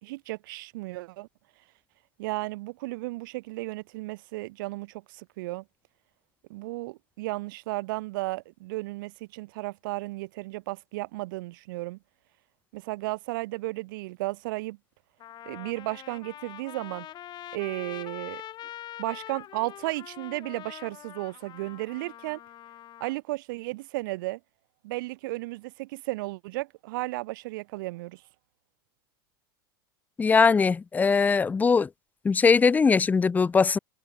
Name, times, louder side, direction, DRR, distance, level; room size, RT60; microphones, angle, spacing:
voice 1, 0.0-1.3 2.2-5.6 6.5-12.0 12.7-14.8 15.4-17.1 17.5-18.4 19.0-22.4 23.0-24.4 24.8-28.2, right 21 dB, 70° right, 3.0 m, -34 dB
Trumpet, 14.5-14.6 15.2-23.1, left 12 dB, 40° left, 1.9 m, -44 dB
voice 2, 30.2-31.9 32.2-33.8, left 5 dB, 15° left, 0.5 m, -21 dB
hypercardioid pair, 100°, 12 cm